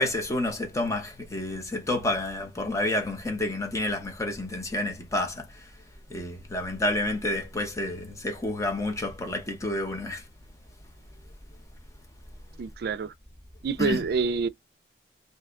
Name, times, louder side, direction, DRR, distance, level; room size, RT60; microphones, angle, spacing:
voice 1, 0.0-5.7 6.1-10.2 13.8-14.0, left 1 dB, 20° left, 0.8 m, -29 dB
voice 2, 12.6-13.1 13.6-14.5, right 5 dB, 60° right, 0.3 m, -27 dB
2.7 x 2.2 x 3.6 m
head